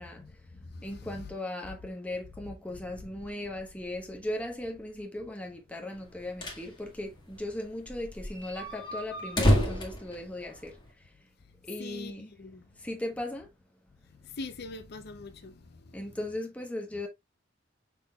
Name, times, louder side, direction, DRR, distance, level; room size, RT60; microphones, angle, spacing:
voice 1, 0.0-1.4 11.8-12.6 14.1-16.2, left 3 dB, 55° left, 0.6 m, -44 dB
voice 2, 0.8-10.8 11.7-12.3 12.8-13.5 15.9-17.1, left 1 dB, 5° left, 1.1 m, -37 dB
sound 1, 6.0-6.7 7.0-7.1 7.3-7.4 7.9-10.9, equal, 25° left, 1.7 m, -28 dB
6.1 x 3.8 x 2.3 m
head